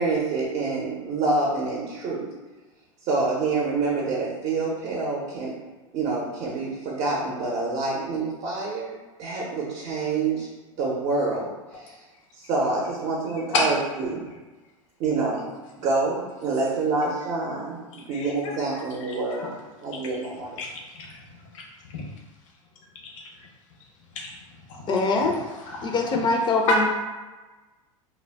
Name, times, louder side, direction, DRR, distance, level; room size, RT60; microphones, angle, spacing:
voice 1, 0.0-2.3 3.0-5.6 5.9-10.5 10.8-12.0 12.3-14.2 15.0-19.5 19.8-20.6, right 3 dB, 45° right, -3 dB, 0.7 m, -27 dB
voice 2, 18.1-19.5 19.9-20.0 20.6-21.2 21.9-22.0 23.0-23.5 24.1-24.3 24.7-24.8 25.2-25.3 25.6-26.0 26.7-26.9, left 2 dB, 70° left, 0 dB, 0.7 m, -29 dB
voice 3, 24.9-25.4 25.8-26.8, left 3 dB, 25° left, 2 dB, 0.4 m, -23 dB
2.2 x 2.1 x 3.3 m, 1.2 s
hypercardioid pair, 105°, 17 cm